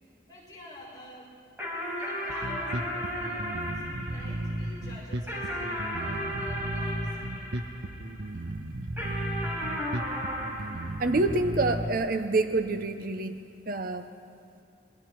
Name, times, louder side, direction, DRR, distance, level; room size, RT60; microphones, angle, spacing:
voice 1, 0.3-1.3 2.0-7.5, left 1 dB, 20° left, -7 dB, 7.1 m, -47 dB
sound 1, 1.6-8.3 9.0-11.8, equal, 10° right, 5.3 m, -35 dB
Bass guitar, 2.3-11.9, right 1 dB, 85° right, 1.0 m, -35 dB
voice 2, 11.0-13.4 13.7-14.1, right 2 dB, 50° right, 8 dB, 0.7 m, -27 dB
26.5 x 22.0 x 4.6 m, 2.4 s
head